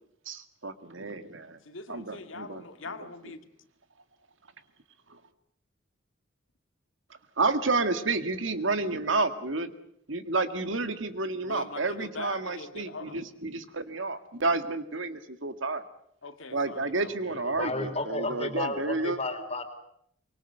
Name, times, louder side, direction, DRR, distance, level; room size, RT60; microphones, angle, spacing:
voice 1, 0.3-1.6 1.9-2.6 5.1-5.2 7.4-9.7 10.1-15.8 16.5-19.2, right 3 dB, 75° right, 10 dB, 1.9 m, -30 dB
voice 2, 1.6-3.4 11.4-13.2 16.2-17.6, left 3 dB, 80° left, 7 dB, 2.1 m, -42 dB
voice 3, 17.5-19.6, left 2 dB, 30° left, 7 dB, 3.7 m, -32 dB
24.5 x 24.0 x 8.0 m, 0.70 s
head